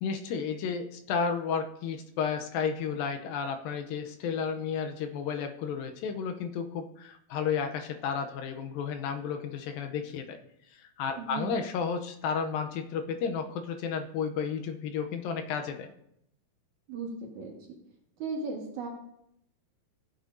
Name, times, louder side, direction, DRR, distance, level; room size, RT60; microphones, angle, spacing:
voice 1, 0.0-10.4 10.7-15.9, left 6 dB, 85° left, 6 dB, 2.4 m, -32 dB
voice 2, 11.2-11.6 16.9-17.5 18.2-18.9, right 3 dB, 60° right, -1 dB, 2.7 m, -36 dB
16.0 x 8.0 x 2.6 m, 0.76 s
omnidirectional pair, 4.3 m